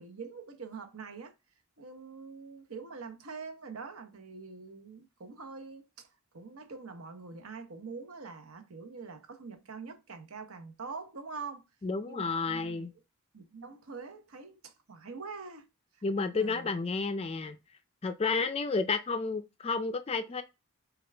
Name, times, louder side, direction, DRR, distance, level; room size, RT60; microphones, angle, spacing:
voice 1, 0.0-1.3 1.8-6.1 6.3-11.6 12.1-12.9 13.3-15.7 15.9-16.0 16.3-16.7, right 4 dB, 70° right, 0.9 m, -44 dB
voice 2, 11.8-12.9 16.0-17.6 18.0-20.4, left 4 dB, 25° left, 0.3 m, -31 dB
6.7 x 2.4 x 3.3 m
head